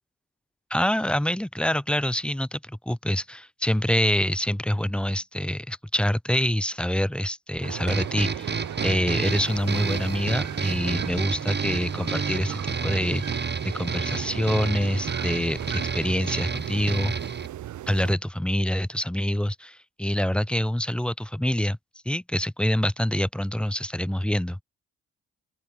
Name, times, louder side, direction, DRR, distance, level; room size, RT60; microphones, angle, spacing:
voice 1, 0.7-13.5 13.7-17.2 17.9-21.8 22.1-24.6, equal, 5° left, 2.0 m, -26 dB
sound 1, 7.6-18.1, right 12 dB, 70° right, 2.4 m, -37 dB
sound 2, 7.9-17.5, right 5 dB, 35° right, 6.0 m, -30 dB
open air
cardioid pair, 90°, 30 cm